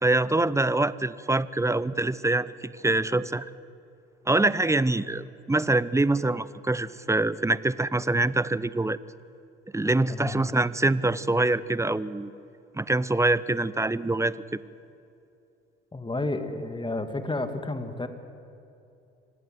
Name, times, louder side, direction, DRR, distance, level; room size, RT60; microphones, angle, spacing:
voice 1, 0.0-3.5 4.3-9.0 9.7-12.3 12.7-14.6, right 2 dB, 10° right, 18 dB, 0.8 m, -25 dB
voice 2, 15.9-18.1, left 2 dB, 15° left, 8 dB, 2.4 m, -31 dB
26.5 x 18.5 x 7.9 m, 2.7 s
hypercardioid pair, 55°, 31 cm